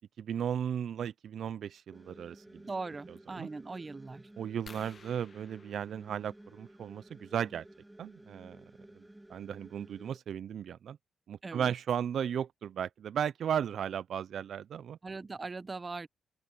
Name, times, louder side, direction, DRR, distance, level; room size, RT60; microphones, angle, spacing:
voice 1, 0.2-2.6 3.4-3.5 4.4-7.6 8.0-8.6 9.3-11.0 11.3-15.0, right 8 dB, 70° right, 0.4 m, -35 dB
sound 1, 1.9-10.2, right 1 dB, 10° right, 0.9 m, -54 dB
voice 2, 2.6-4.3 11.4-11.7 15.0-16.1, right 3 dB, 30° right, 1.2 m, -40 dB
sound 2, 4.7-7.0 8.6-8.8 9.4-9.5 9.8-10.0, left 5 dB, 45° left, 1.4 m, -56 dB
open air
cardioid pair, 75°, 0 cm